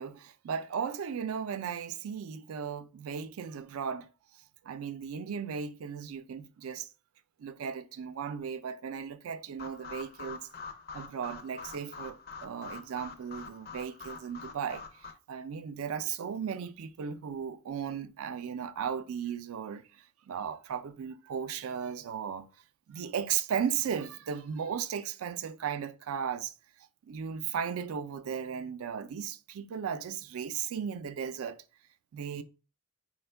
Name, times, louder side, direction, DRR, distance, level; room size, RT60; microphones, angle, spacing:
voice 1, 0.0-4.1 4.6-6.9 7.4-10.4 10.9-22.5 22.9-26.5 27.0-31.6 32.1-32.4, right 7 dB, 70° right, 0.3 m, -36 dB
sound 1, 9.6-15.1, left 5 dB, 45° left, 0.4 m, -45 dB
4.2 x 2.2 x 3.3 m
head